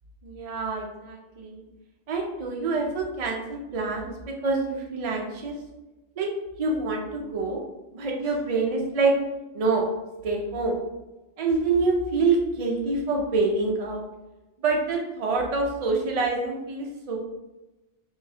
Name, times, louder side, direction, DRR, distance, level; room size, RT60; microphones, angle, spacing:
voice 1, 0.2-1.6 2.1-5.6 6.2-6.3 6.6-7.6 7.9-9.1 9.5-9.8 10.2-10.8 11.4-14.0 14.6-17.2, right 3 dB, 55° right, 0 dB, 0.4 m, -26 dB
3.6 x 3.5 x 2.7 m, 1.1 s
omnidirectional pair, 1.2 m